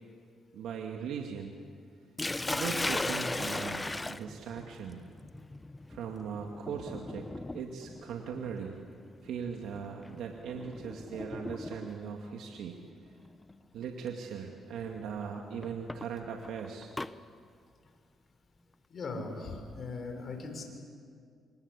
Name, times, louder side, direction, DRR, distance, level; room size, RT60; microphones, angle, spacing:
voice 1, 0.5-1.5 2.5-5.0 5.9-7.3 7.5-8.7 9.2-12.8 13.7-16.9, right 6 dB, 80° right, 2 dB, 2.2 m, -39 dB
Sink (filling or washing), 2.2-12.1 13.2-13.6 14.1-14.2 15.6-17.1, left 2 dB, 15° left, 0.8 m, -38 dB
voice 2, 18.9-20.6, left 3 dB, 50° left, 4 dB, 6.4 m, -39 dB
27.0 x 26.0 x 8.4 m, 2.2 s
cardioid pair, 90°, 0 cm